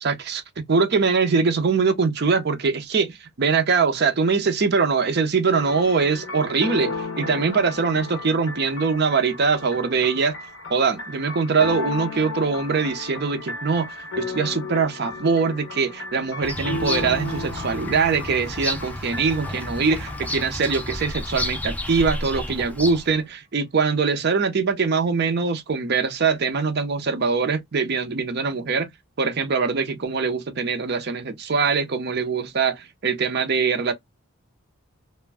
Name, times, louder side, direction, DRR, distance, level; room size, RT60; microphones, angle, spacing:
voice 1, 0.0-0.4 0.7-10.4 10.7-28.9 29.2-33.9, right 5 dB, 50° right, 0.5 m, -22 dB
sound 1, 5.5-21.6, left 3 dB, 60° left, 0.6 m, -34 dB
Bird vocalization bird call bird song, 16.4-23.2, left 1 dB, 5° left, 0.4 m, -32 dB
2.4 x 2.1 x 3.3 m
head